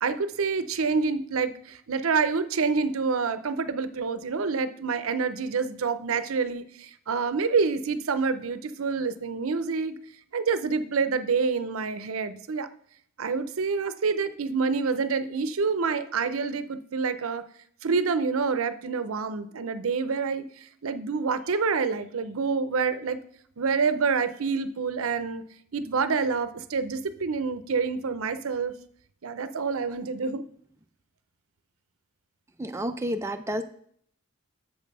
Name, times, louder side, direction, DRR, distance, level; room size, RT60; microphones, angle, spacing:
voice 1, 0.0-9.9 10.3-12.7 13.2-17.4 17.8-23.2 23.6-25.4 25.7-28.7 29.2-30.4, right 5 dB, 90° right, 12 dB, 0.6 m, -27 dB
voice 2, 32.6-33.6, equal, 15° right, 6 dB, 0.4 m, -30 dB
7.2 x 5.3 x 5.3 m, 0.62 s
head